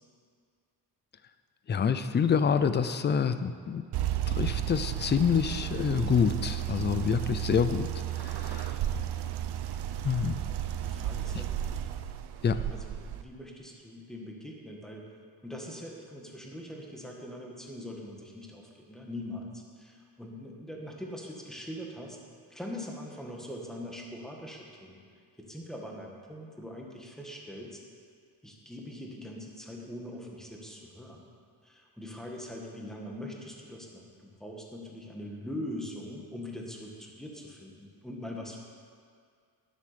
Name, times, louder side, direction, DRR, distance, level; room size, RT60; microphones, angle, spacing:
voice 1, 1.7-3.8 4.3-7.9 8.2-8.7 10.0-10.4 12.4-12.6, left 6 dB, 30° left, 11 dB, 0.5 m, -27 dB
sound 1, 3.9-13.2, right 11 dB, 80° right, 0.8 m, -33 dB
voice 2, 10.8-11.6 12.7-15.1 15.4-22.2 22.5-25.0 25.4-27.8 28.4-31.3 31.6-38.6, left 1 dB, ahead, -1 dB, 1.6 m, -42 dB
11.0 x 11.0 x 6.8 m, 2.2 s
wide cardioid pair, 165°, 39 cm